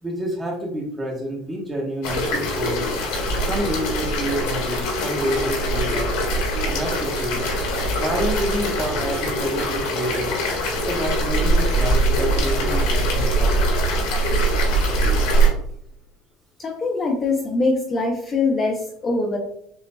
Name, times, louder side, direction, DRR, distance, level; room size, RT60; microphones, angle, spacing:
voice 1, 0.0-2.9 3.4-6.1 6.6-7.4 8.0-10.3 10.7-13.8, equal, 15° right, -2 dB, 1.1 m, -28 dB
sound 1, 2.0-15.5, right 1 dB, 85° left, 1.6 m, -22 dB
voice 2, 16.6-19.4, left 3 dB, 20° left, 1 dB, 0.6 m, -23 dB
6.9 x 2.7 x 2.2 m, 0.72 s
cardioid pair, 170°, 0 cm